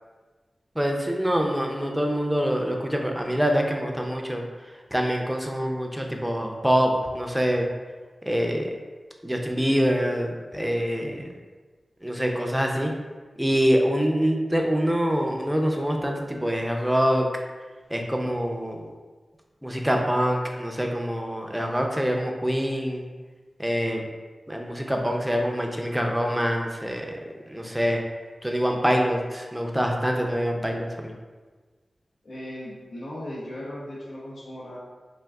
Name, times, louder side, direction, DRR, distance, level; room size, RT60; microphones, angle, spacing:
voice 1, 0.8-4.4 4.9-7.7 8.3-8.8 9.2-11.2 12.0-12.9 13.4-17.3 17.9-18.8 19.6-23.0 23.6-24.0 24.5-27.1 27.5-28.0 28.4-31.1, equal, 5° right, 1 dB, 0.4 m, -25 dB
voice 2, 32.2-34.8, left 1 dB, 85° left, -5 dB, 0.6 m, -37 dB
3.5 x 2.5 x 2.3 m, 1.4 s
cardioid pair, 50°, 0 cm